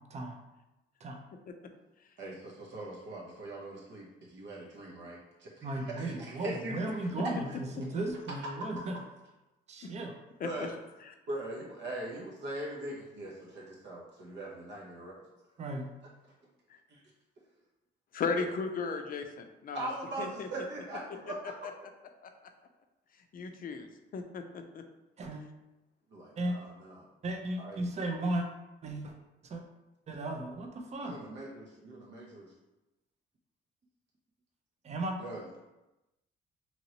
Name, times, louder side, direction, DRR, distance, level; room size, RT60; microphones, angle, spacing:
voice 1, 0.1-0.4 1.0-1.2 5.6-9.0 9.7-10.2 15.6-15.9 25.2-25.4 26.4-26.6 27.2-28.5 28.8-29.1 29.4-29.6 30.1-31.2 34.8-35.2, right 2 dB, 35° right, 3 dB, 0.5 m, -35 dB
voice 2, 2.2-7.0 8.6-8.8 10.4-10.8 11.3-15.2 16.9-17.0 18.3-18.5 19.7-21.7 26.1-27.1 27.6-27.8 31.0-32.5 35.2-35.4, right 1 dB, 65° right, -3 dB, 0.7 m, -41 dB
voice 3, 18.1-19.9 20.2-20.5 22.2-22.3 23.3-24.8, left 4 dB, 45° left, 6 dB, 0.4 m, -36 dB
2.9 x 2.9 x 2.8 m, 1.0 s
cardioid pair, 90°, 20 cm